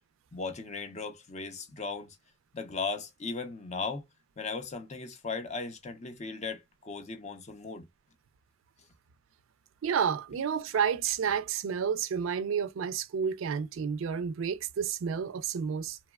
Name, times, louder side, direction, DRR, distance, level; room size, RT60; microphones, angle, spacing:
voice 1, 0.3-2.2 2.5-4.0 4.4-7.9, left 4 dB, 35° left, 0.6 m, -37 dB
voice 2, 9.8-16.0, right 7 dB, 80° right, 0.4 m, -30 dB
2.9 x 2.0 x 2.2 m
head